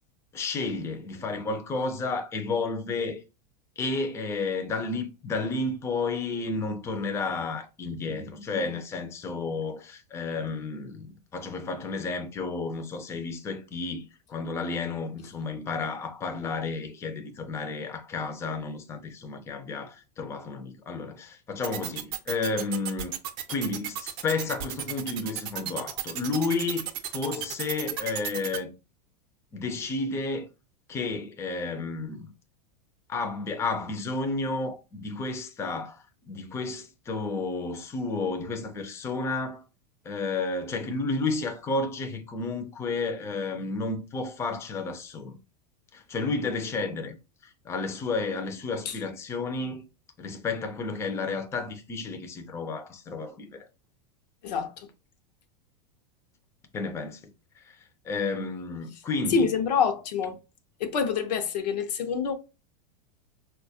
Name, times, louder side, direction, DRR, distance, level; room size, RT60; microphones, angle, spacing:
voice 1, 0.3-3.2 3.8-11.1 11.3-23.1 23.5-28.7 29.5-30.5 30.9-32.3 33.1-39.6 40.0-45.4 45.9-47.2 47.4-49.8 50.2-53.7 56.7-57.3 57.6-59.5, left 3 dB, 15° left, 0.4 m, -32 dB
sound 1, 21.6-28.6, right 10 dB, 45° right, 0.5 m, -33 dB
voice 2, 54.4-54.9 59.3-60.4 60.8-62.3, left 6 dB, 85° left, 0.6 m, -26 dB
3.9 x 2.2 x 2.6 m
supercardioid pair, 130°, 21 cm